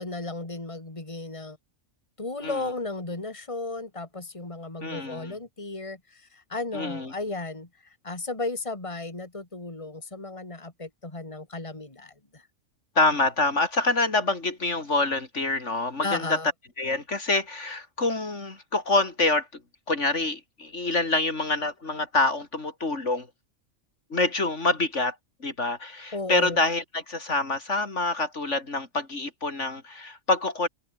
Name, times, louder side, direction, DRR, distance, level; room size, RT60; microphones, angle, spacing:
voice 1, 0.0-1.6 2.2-7.7 8.0-12.4 16.0-16.5 26.1-26.6, left 2 dB, 25° left, 3.0 m, -34 dB
voice 2, 4.8-5.3 6.7-7.1 13.0-16.4 16.8-19.5 19.9-23.3 24.1-25.2 25.4-30.7, left 2 dB, 60° left, 3.5 m, -26 dB
omnidirectional pair, 1.4 m